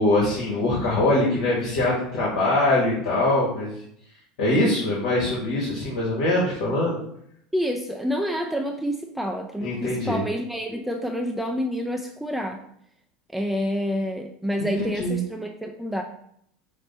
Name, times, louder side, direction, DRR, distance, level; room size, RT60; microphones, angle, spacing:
voice 1, 0.0-3.7 4.4-7.0 9.6-10.2 14.6-14.7 14.9-15.2, left 2 dB, 80° left, -6 dB, 1.4 m, -23 dB
voice 2, 7.5-12.6 13.3-16.0, equal, 5° right, 2 dB, 0.3 m, -28 dB
5.9 x 2.1 x 4.1 m, 0.71 s
supercardioid pair, 125°, 3 cm